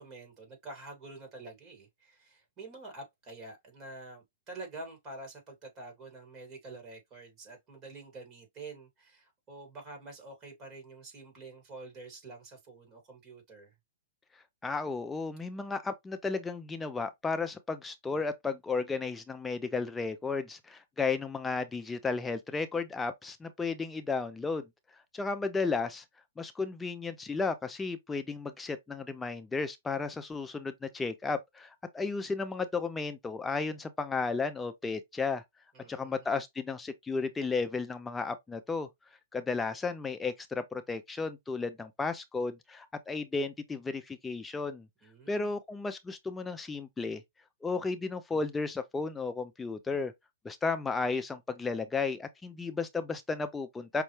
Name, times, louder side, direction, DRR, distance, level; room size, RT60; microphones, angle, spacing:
voice 1, 0.0-13.7 35.7-36.3 45.0-45.5, right 2 dB, 30° right, 2.4 m, -47 dB
voice 2, 14.6-24.6 25.1-26.0 26.4-35.4 35.9-38.9 39.3-44.9 45.3-47.2 47.6-50.1 50.4-54.0, left 4 dB, 10° left, 0.5 m, -34 dB
5.3 x 2.2 x 3.2 m
hypercardioid pair, 130°, 0 cm